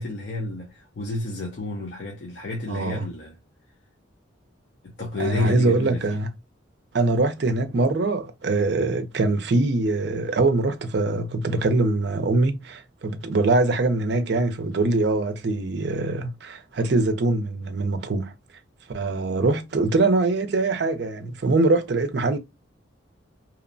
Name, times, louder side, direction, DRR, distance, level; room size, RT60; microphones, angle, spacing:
voice 1, 0.0-3.3 4.8-6.2, left 2 dB, 60° left, 0.5 m, -30 dB
voice 2, 2.7-3.0 5.2-6.3 6.9-18.3 18.9-22.4, right 2 dB, 60° right, 0.5 m, -23 dB
2.8 x 2.0 x 2.5 m
head